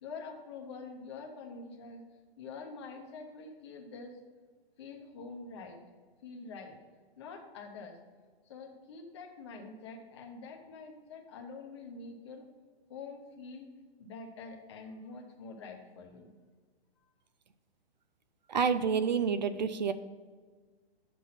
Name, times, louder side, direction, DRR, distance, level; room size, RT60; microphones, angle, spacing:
voice 1, 0.0-2.0 2.4-4.2 4.8-5.8 6.2-6.8 7.2-8.0 8.5-12.5 12.9-13.7 14.0-16.3, left 4 dB, 25° left, 2 dB, 1.0 m, -46 dB
voice 2, 18.5-19.9, right 6 dB, 45° right, 12 dB, 0.5 m, -28 dB
9.1 x 6.1 x 5.7 m, 1.4 s
hypercardioid pair, 175°, 32 cm